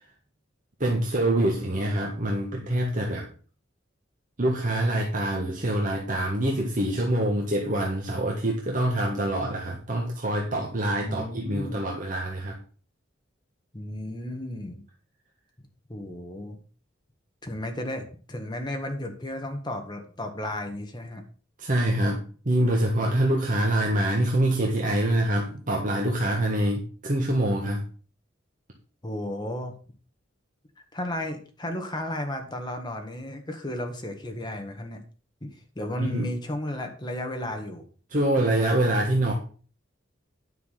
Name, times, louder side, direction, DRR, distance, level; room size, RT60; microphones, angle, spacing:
voice 1, 0.8-3.3 4.4-12.6 21.6-27.9 36.0-36.3 38.1-39.3, right 1 dB, 45° right, -1 dB, 1.6 m, -25 dB
voice 2, 11.0-11.8 13.7-14.8 15.6-16.6 17.4-21.2 29.0-29.8 30.9-35.0 35.4-37.8, left 1 dB, 25° left, 4 dB, 1.7 m, -34 dB
9.7 x 5.9 x 5.8 m, 0.40 s
head